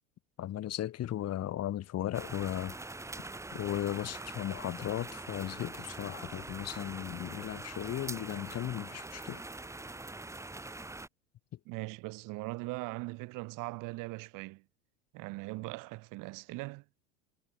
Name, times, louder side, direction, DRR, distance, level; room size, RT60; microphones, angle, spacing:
voice 1, 0.4-2.8 3.5-9.4, left 12 dB, 40° left, 2.3 m, -36 dB
sound 1, 2.1-11.1, right 2 dB, 5° right, 1.4 m, -43 dB
voice 2, 11.7-14.6 15.1-16.8, right 24 dB, 55° right, 1.8 m, -40 dB
hypercardioid pair, 85°, 38 cm